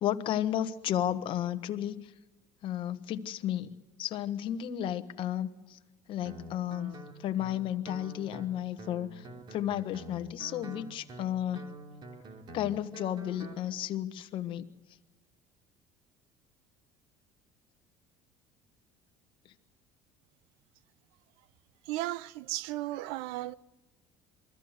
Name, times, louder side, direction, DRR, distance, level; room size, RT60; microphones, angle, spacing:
voice 1, 0.0-1.9 2.6-3.7 4.0-5.8 6.1-6.9 7.2-9.2 9.5-11.7 12.5-14.7, left 11 dB, 60° left, 1.3 m, -33 dB
Guitar, 6.2-13.6, right 1 dB, 50° right, 3.0 m, -47 dB
voice 2, 21.9-23.5, right 16 dB, 80° right, 0.7 m, -35 dB
23.0 x 14.5 x 8.1 m
supercardioid pair, 90°, 10 cm